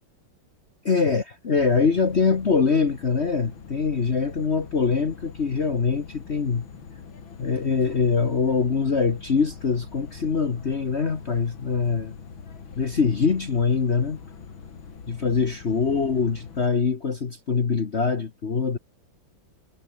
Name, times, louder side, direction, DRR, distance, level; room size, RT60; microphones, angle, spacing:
voice 1, 0.8-6.6 7.4-12.1 12.8-14.2 15.1-18.8, left 5 dB, 40° left, 1.5 m, -23 dB
sound 1, 1.5-16.7, left 6 dB, 85° left, 3.3 m, -43 dB
omnidirectional pair, 2.1 m